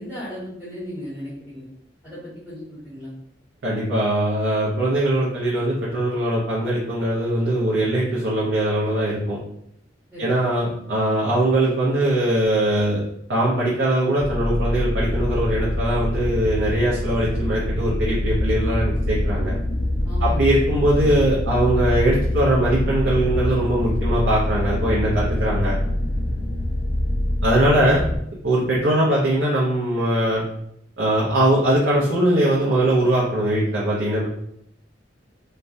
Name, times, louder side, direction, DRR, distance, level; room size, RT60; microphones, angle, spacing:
voice 1, 0.0-1.7 2.0-2.2 2.4-3.1 10.1-10.2 20.0-20.4, equal, 5° left, -12 dB, 1.2 m, -35 dB
voice 2, 3.6-9.4 10.2-13.0 13.3-19.6 20.2-25.8 27.4-28.0 28.4-30.4 31.0-34.3, right 1 dB, 80° right, -5 dB, 0.6 m, -21 dB
sound 1, 14.2-28.2, left 1 dB, 55° left, 0.4 m, -24 dB
3.2 x 2.2 x 2.5 m, 0.73 s
head